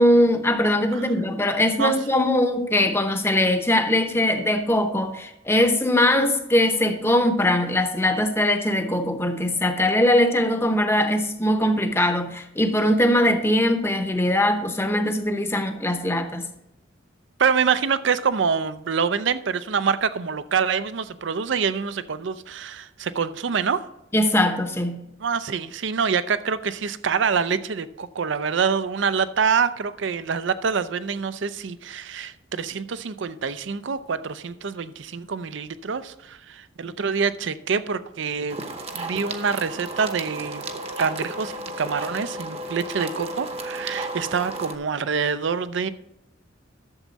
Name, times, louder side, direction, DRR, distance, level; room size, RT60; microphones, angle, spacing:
voice 1, 0.0-16.5 24.1-25.0, left 1 dB, 10° left, 7 dB, 0.8 m, -21 dB
voice 2, 17.4-23.8 25.2-38.6 38.9-40.6 41.0-45.9, right 6 dB, 65° right, 14 dB, 0.5 m, -26 dB
sound 1, 38.5-44.8, right 2 dB, 30° right, 0.9 m, -33 dB
11.5 x 7.3 x 4.0 m, 0.85 s
head